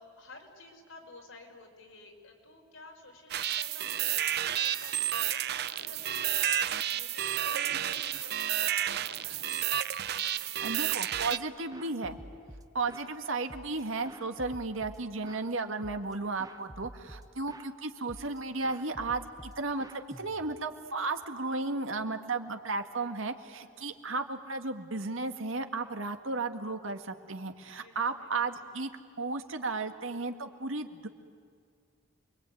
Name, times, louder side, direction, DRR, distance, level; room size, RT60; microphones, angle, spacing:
voice 1, 0.0-9.4 23.6-24.0 27.7-28.5, left 2 dB, 85° left, 1 dB, 5.2 m, -53 dB
sound 1, 3.3-11.4, right 11 dB, 55° right, 0.7 m, -31 dB
voice 2, 10.6-12.2 12.7-28.9 29.2-31.1, right 3 dB, 80° right, 7 dB, 1.8 m, -34 dB
sound 2, 11.1-11.4 11.7-13.1 13.5-15.5 15.8-16.1 16.4-17.7 18.1-18.4 18.6-20.7, right 1 dB, 20° right, 1.0 m, -49 dB
28.5 x 22.5 x 9.2 m, 2.1 s
head